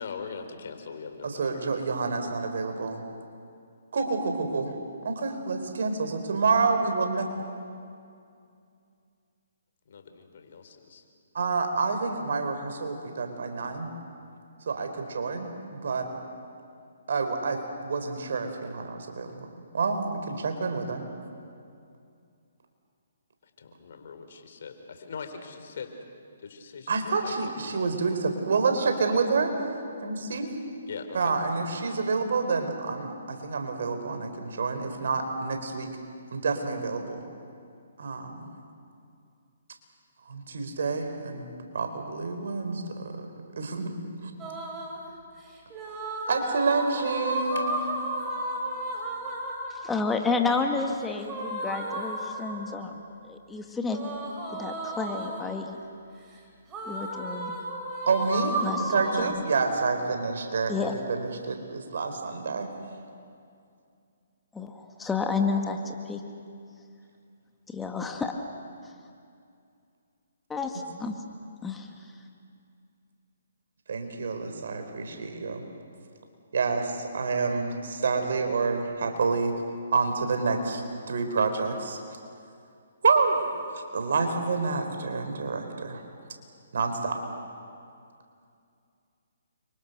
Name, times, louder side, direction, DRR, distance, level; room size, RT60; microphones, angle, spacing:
voice 1, 0.0-1.7 9.9-11.0 23.6-25.9 26.4-28.0 30.9-31.3, left 5 dB, 60° left, 7 dB, 3.8 m, -41 dB
voice 2, 1.2-3.0 3.9-4.7 5.0-7.3 11.3-13.9 14.7-16.1 17.1-19.3 19.7-21.0 26.9-29.5 30.0-30.5 31.1-35.9 36.3-37.2 38.0-38.5 40.3-41.4 41.7-43.3 43.6-44.3 46.3-47.7 58.1-62.7 73.9-75.6 76.5-79.5 79.9-80.8 81.1-82.0 83.0-86.0 86.7-87.2, right 4 dB, 65° right, 6 dB, 4.2 m, -28 dB
sound 1, 44.4-45.0 45.7-49.9 51.2-52.8 53.9-55.6 56.7-59.2, right 1 dB, 20° right, 5.2 m, -33 dB
voice 3, 49.8-52.9 53.2-54.0 54.5-55.8 56.9-57.6 58.6-58.9 59.2-59.4 60.7-60.9 64.5-66.2 67.7-68.3 70.5-71.1 71.6-71.9, left 4 dB, 10° left, 3 dB, 2.0 m, -30 dB
30.0 x 25.0 x 6.8 m, 2.4 s
figure-of-eight pair, 140°, 0 cm